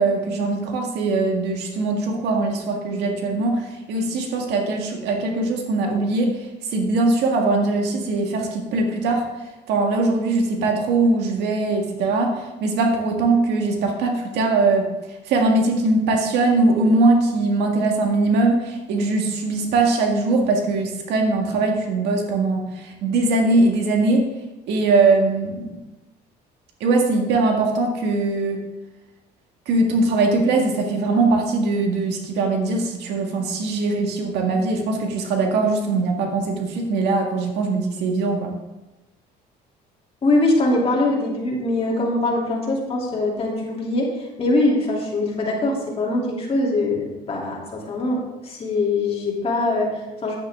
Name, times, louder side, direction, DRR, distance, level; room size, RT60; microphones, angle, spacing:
voice 1, 0.0-6.4 6.7-9.2 9.7-14.9 15.3-24.3 24.7-25.6 26.8-28.6 29.7-38.5, right 3 dB, 80° right, 2 dB, 1.9 m, -21 dB
voice 2, 40.2-50.4, left 2 dB, 35° left, -3 dB, 3.1 m, -22 dB
10.0 x 8.8 x 3.7 m, 1.0 s
cardioid pair, 110°, 17 cm